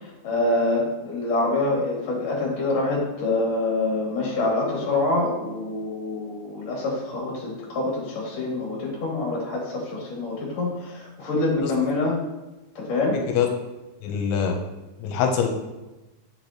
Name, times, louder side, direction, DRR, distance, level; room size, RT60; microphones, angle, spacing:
voice 1, 0.0-12.2 12.7-13.2, left 2 dB, 45° left, -4 dB, 2.9 m, -26 dB
voice 2, 14.0-14.5 15.0-15.5, left 7 dB, 90° left, 4 dB, 3.1 m, -23 dB
7.9 x 6.8 x 2.9 m, 1.0 s
omnidirectional pair, 5.5 m